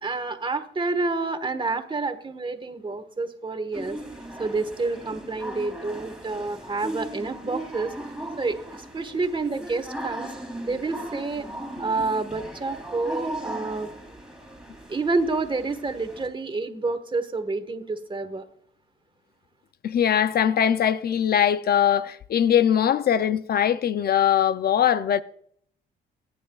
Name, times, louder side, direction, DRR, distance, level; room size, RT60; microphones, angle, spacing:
voice 1, 0.0-4.0 4.4-7.9 8.4-10.3 10.7-11.5 11.8-13.9 14.9-18.4, right 3 dB, 25° right, 1.4 m, -28 dB
sound 1, 3.7-16.3, right 1 dB, 5° right, 3.4 m, -37 dB
voice 2, 19.8-25.2, left 9 dB, 50° left, 0.5 m, -21 dB
21.0 x 9.6 x 2.3 m
cardioid pair, 90°, 20 cm